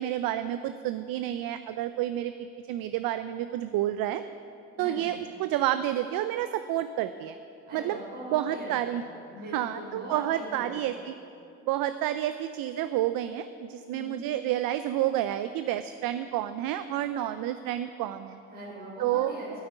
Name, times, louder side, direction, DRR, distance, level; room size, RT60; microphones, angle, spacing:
voice 1, 0.0-4.2 4.8-7.4 7.7-8.0 8.3-9.0 9.5-11.1 11.6-18.4 19.0-19.3, right 12 dB, 60° right, 11 dB, 0.6 m, -30 dB
voice 2, 7.7-9.0 9.3-10.8 13.9-14.2 18.5-19.6, right 1 dB, 80° right, -7 dB, 3.6 m, -41 dB
9.3 x 8.6 x 9.4 m, 2.8 s
hypercardioid pair, 50°, 39 cm